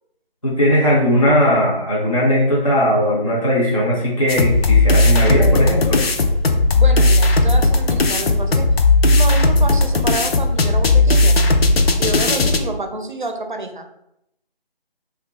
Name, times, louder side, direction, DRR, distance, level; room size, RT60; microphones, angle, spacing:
voice 1, 0.4-6.0, equal, 35° left, -6 dB, 0.5 m, -18 dB
sound 1, 4.3-12.6, left 2 dB, 80° left, 0.6 m, -15 dB
voice 2, 6.7-8.7 9.0-11.4 12.0-13.9, right 2 dB, 55° right, 6 dB, 0.5 m, -28 dB
2.9 x 2.2 x 3.6 m, 0.82 s
figure-of-eight pair, 180°, 30 cm